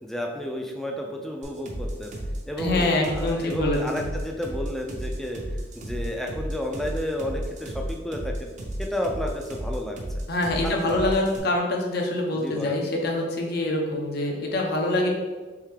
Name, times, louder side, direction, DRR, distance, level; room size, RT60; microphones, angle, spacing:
voice 1, 0.0-2.1 2.5-5.4 5.7-8.5 8.8-10.0 10.6-11.2 12.3-12.8, equal, ahead, 1 dB, 0.4 m, -31 dB
sound 1, 1.4-11.4, equal, 40° right, 0.6 m, -33 dB
voice 2, 2.6-4.1 10.3-15.1, left 2 dB, 55° left, 0 dB, 0.7 m, -25 dB
3.5 x 3.2 x 3.2 m, 1.3 s
head